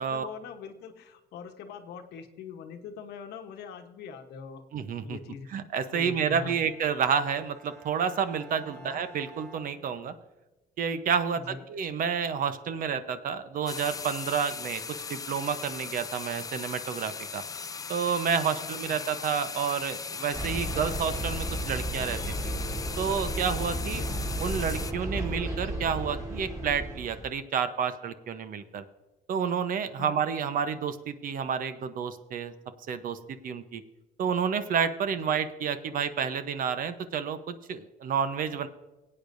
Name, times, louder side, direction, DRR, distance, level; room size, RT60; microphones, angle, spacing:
voice 1, 0.0-4.6 5.0-5.5 5.9-6.6 8.8-9.0 11.3-11.7 24.0-24.1 30.0-30.3 35.2-35.3, left 6 dB, 75° left, 6 dB, 1.1 m, -42 dB
voice 2, 4.7-5.2 5.5-10.1 10.8-14.8 15.1-17.4 17.9-22.5 23.0-24.0 24.4-28.8 29.3-32.5 32.9-33.8 34.2-38.7, right 7 dB, 55° right, 11 dB, 0.9 m, -30 dB
Bowed string instrument, 6.3-10.5, right 3 dB, ahead, 2.5 m, -52 dB
sound 1, 13.7-24.9, left 5 dB, 20° left, 0.4 m, -38 dB
sound 2, 20.3-27.3, right 1 dB, 15° right, 2.8 m, -33 dB
18.5 x 8.7 x 2.6 m, 1.1 s
cardioid pair, 110°, 17 cm